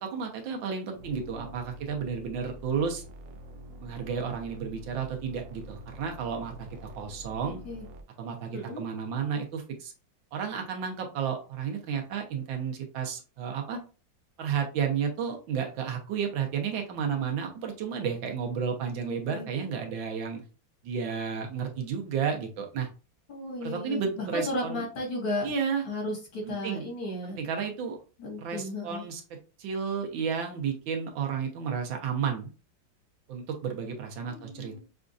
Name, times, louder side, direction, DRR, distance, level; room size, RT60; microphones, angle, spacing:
voice 1, 0.0-3.0 3.8-7.6 8.2-9.9 10.3-13.8 14.4-20.4 20.8-22.9 23.6-24.8 25.4-25.8 26.4-26.8 27.2-28.0 28.4-29.2 29.6-32.5 33.3-34.8, right 6 dB, 90° right, 2 dB, 1.7 m, -32 dB
voice 2, 1.0-1.6 7.4-7.9 8.5-8.8 18.5-19.5 23.3-25.5 25.9-27.4 28.2-29.1 34.3-34.8, left 1 dB, 80° left, -2 dB, 2.7 m, -35 dB
sound 1, 1.0-8.0, equal, 65° right, 0.8 m, -46 dB
6.2 x 2.4 x 2.6 m, 0.34 s
omnidirectional pair, 2.0 m